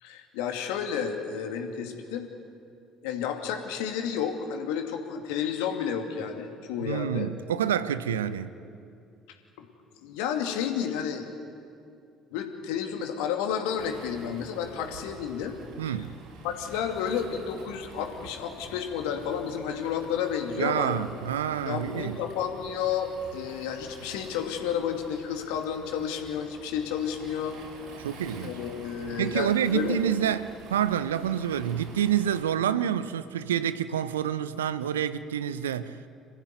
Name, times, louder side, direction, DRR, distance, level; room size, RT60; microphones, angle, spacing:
voice 1, 0.0-2.3 3.0-7.3 8.3-8.4 9.6-9.7 10.0-11.3 12.3-15.6 15.8-15.9 16.4-21.0 21.7-27.6 28.4-30.0, left 8 dB, 70° left, 2.4 m, -31 dB
voice 2, 6.8-8.5 15.8-16.1 20.6-22.2 28.0-28.5 29.2-36.0, right 9 dB, 80° right, 0.7 m, -28 dB
Waves surf, 13.8-32.4, right 2 dB, 60° right, 5.1 m, -48 dB
26.5 x 15.5 x 9.4 m
figure-of-eight pair, 55°, 0 cm